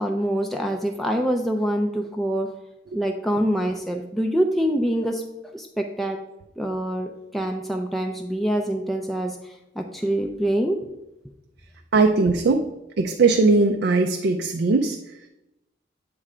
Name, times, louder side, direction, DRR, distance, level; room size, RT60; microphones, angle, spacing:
voice 1, 0.0-2.5 2.9-5.2 5.5-6.2 6.6-10.8, right 1 dB, ahead, 2 dB, 0.3 m, -25 dB
voice 2, 11.9-12.6 13.0-15.3, right 3 dB, 65° right, 4 dB, 0.4 m, -20 dB
8.3 x 3.3 x 4.8 m, 0.92 s
head